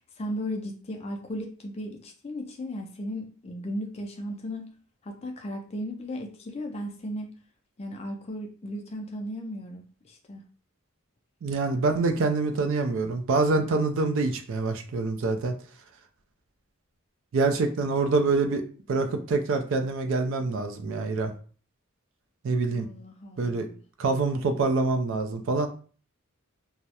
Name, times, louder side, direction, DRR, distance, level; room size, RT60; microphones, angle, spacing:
voice 1, 0.2-4.7 5.0-7.4 7.8-10.4 22.7-23.8, equal, 30° left, 3 dB, 0.3 m, -36 dB
voice 2, 11.4-15.5 17.3-18.6 18.9-21.3 22.4-22.9 23.4-23.7 24.0-25.7, right 3 dB, 60° right, 6 dB, 0.3 m, -25 dB
2.3 x 2.0 x 2.8 m, 0.41 s
head